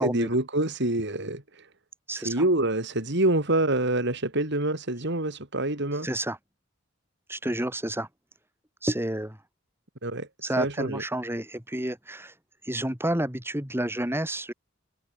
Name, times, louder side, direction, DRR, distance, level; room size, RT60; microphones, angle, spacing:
voice 1, 0.0-1.7 2.2-6.1 10.0-10.3 10.6-11.0, right 1 dB, 60° right, 4.9 m, -26 dB
voice 2, 2.1-2.4 5.9-6.4 7.3-8.1 8.8-9.4 10.4-12.3 12.6-14.5, right 1 dB, 10° right, 5.8 m, -30 dB
head